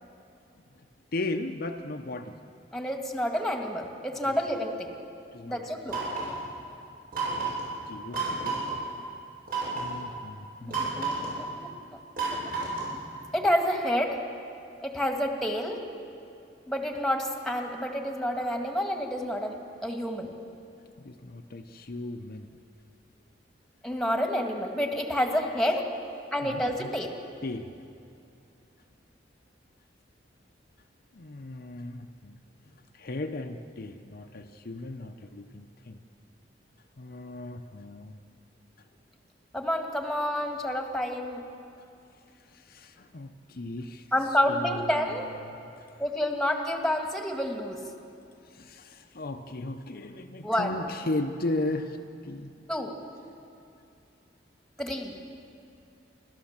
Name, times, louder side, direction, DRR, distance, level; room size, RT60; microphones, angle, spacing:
voice 1, 1.1-2.3 4.3-4.4 5.3-5.6 7.3-7.6 7.9-8.8 9.7-10.9 21.0-22.5 26.4-26.9 27.4-27.7 31.2-32.4 33.0-36.0 37.0-38.1 42.7-44.0 44.5-44.8 45.5-45.6 48.6-52.0 52.2-52.5, left 2 dB, 55° left, 5 dB, 0.8 m, -36 dB
voice 2, 2.7-4.9 5.4-6.0 10.6-11.1 11.6-11.7 13.3-14.2 14.8-15.8 16.7-19.6 19.8-20.3 23.8-25.9 26.3-27.2 39.5-41.4 44.1-45.2 46.0-47.8 50.4-50.8 52.7-52.9 54.8-55.2, equal, 5° left, 3 dB, 1.8 m, -29 dB
sound 1, 5.9-6.4 7.1-7.7 8.1-8.8 9.5-9.9 10.7-11.4 12.2-13.0, right 4 dB, 55° right, 7.2 m, -31 dB
28.0 x 13.0 x 7.3 m, 2.6 s
head